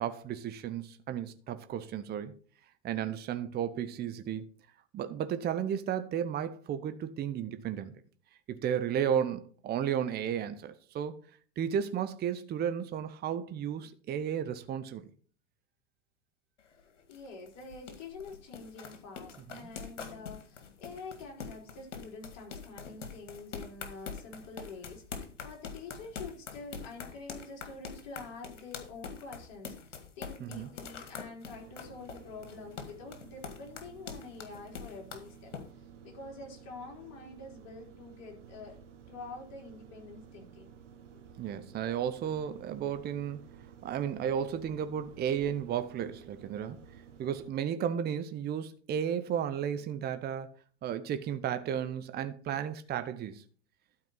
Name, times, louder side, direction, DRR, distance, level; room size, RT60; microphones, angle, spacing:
voice 1, 0.0-2.4 2.8-4.4 4.9-8.0 8.5-11.2 11.6-15.0 19.5-19.7 30.4-30.7 41.4-43.4 43.8-46.8 47.2-50.5 50.8-53.4, right 9 dB, 25° right, 0.9 m, -33 dB
sound 1, 16.6-35.6, left 6 dB, 75° left, 1.9 m, -44 dB
voice 2, 17.1-35.5 36.0-38.7 39.1-40.7, left 3 dB, 45° left, 4.1 m, -47 dB
sound 2, 31.5-47.5, right 7 dB, 80° right, 1.7 m, -54 dB
12.5 x 4.7 x 5.6 m
hypercardioid pair, 100°, 36 cm